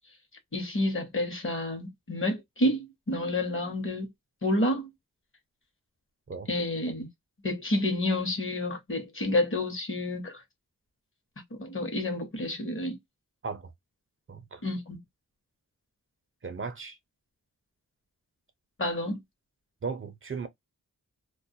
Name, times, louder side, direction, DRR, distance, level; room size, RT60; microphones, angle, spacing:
voice 1, 0.5-4.1 4.4-4.9 6.5-7.1 7.4-10.4 11.5-13.0 14.6-15.0 18.8-19.2, left 1 dB, 40° left, 0.9 m, -29 dB
voice 2, 14.3-14.6 16.4-17.0 19.8-20.5, right 5 dB, 40° right, 0.5 m, -36 dB
2.3 x 2.1 x 2.6 m
wide cardioid pair, 75°, 33 cm